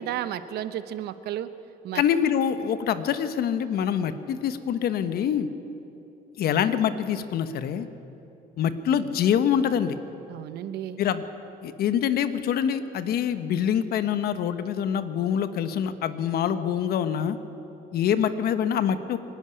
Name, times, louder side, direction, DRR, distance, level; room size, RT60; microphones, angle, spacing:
voice 1, 0.0-1.5 1.8-2.0 10.3-11.0, right 11 dB, 75° right, 12 dB, 1.0 m, -33 dB
voice 2, 1.9-5.5 6.4-7.9 8.6-10.0 11.0-11.2 11.6-17.4 17.9-19.2, left 8 dB, 65° left, 11 dB, 1.2 m, -25 dB
25.0 x 11.5 x 9.8 m, 3.0 s
cardioid pair, 110°, 17 cm